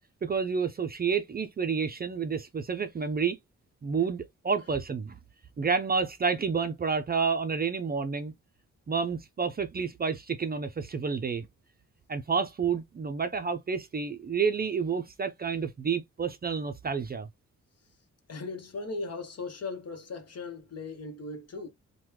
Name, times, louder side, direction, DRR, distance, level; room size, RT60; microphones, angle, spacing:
voice 1, 0.2-3.4 3.8-5.2 5.6-8.3 8.9-11.5 12.1-17.3, right 5 dB, 30° right, 0.4 m, -29 dB
voice 2, 18.3-21.7, left 3 dB, 55° left, 0.9 m, -38 dB
3.3 x 2.2 x 3.0 m
cardioid pair, 90°, 30 cm